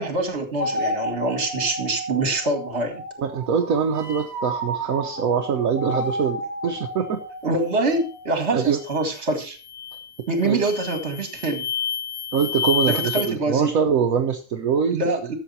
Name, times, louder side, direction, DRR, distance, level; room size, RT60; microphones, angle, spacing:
voice 1, 0.0-3.0 7.4-9.6 10.3-11.7 12.9-13.7 14.9-15.3, right 2 dB, 45° right, 7 dB, 2.2 m, -25 dB
sound 1, 0.6-8.9, equal, 10° right, 4.0 m, -32 dB
voice 2, 3.2-7.2 8.5-8.8 10.4-10.7 12.3-15.0, right 7 dB, 65° right, 3 dB, 1.4 m, -23 dB
sound 2, 8.8-9.1 9.6-10.1 10.6-13.3, left 8 dB, 70° left, 2.3 m, -29 dB
13.0 x 7.1 x 4.2 m, 0.34 s
omnidirectional pair, 1.6 m